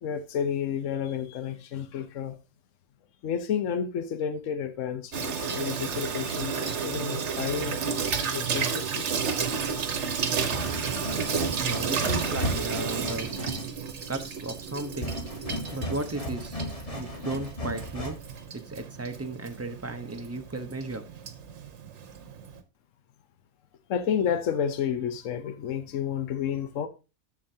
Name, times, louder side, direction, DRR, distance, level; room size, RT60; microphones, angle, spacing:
voice 1, 0.0-2.4 3.2-7.8 8.3-9.1 9.4-9.6 10.9-11.0 23.9-26.9, left 8 dB, 70° left, 1.2 m, -31 dB
Water tap faucet / Sink (filling or washing), 5.1-22.6, right 6 dB, 60° right, 1.2 m, -32 dB
sound 1, 9.4-18.4, equal, 25° left, 1.6 m, -35 dB
voice 2, 11.6-13.3 14.1-15.1 15.7-16.6 16.9-18.2 18.5-21.1, right 2 dB, 15° right, 0.8 m, -35 dB
10.5 x 7.2 x 2.8 m
omnidirectional pair, 1.4 m